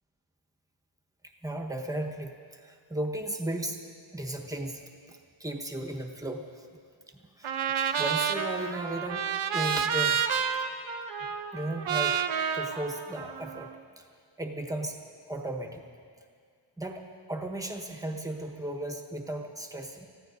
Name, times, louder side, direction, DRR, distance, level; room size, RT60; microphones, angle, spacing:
voice 1, 1.4-2.3 2.6-3.8 4.1-4.8 5.4-6.7 7.1-9.2 9.5-10.2 11.5-12.2 12.5-13.7 14.0-14.1 14.4-15.0 15.3-15.8 16.8-17.0 17.3-20.1, right 1 dB, 5° right, 1 dB, 1.1 m, -35 dB
Trumpet, 7.4-13.7, right 7 dB, 80° right, 0.9 m, -30 dB
29.5 x 15.5 x 2.6 m, 2.1 s
wide cardioid pair, 160°, 48 cm